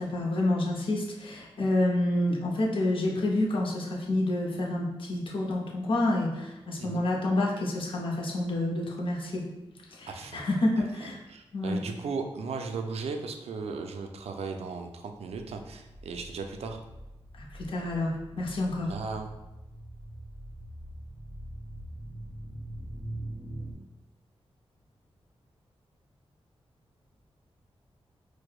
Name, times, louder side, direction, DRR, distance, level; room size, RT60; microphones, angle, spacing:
voice 1, 0.0-9.4 9.9-11.2 11.5-11.8 17.4-18.9, left 1 dB, 55° left, -2 dB, 0.6 m, -28 dB
voice 2, 10.1-10.4 11.3-16.8 18.9-19.3, right 4 dB, 85° right, 4 dB, 0.4 m, -36 dB
sound 1, 15.4-23.7, right 1 dB, 25° right, 0.7 m, -43 dB
4.6 x 2.0 x 2.4 m, 0.99 s
wide cardioid pair, 105°, 10 cm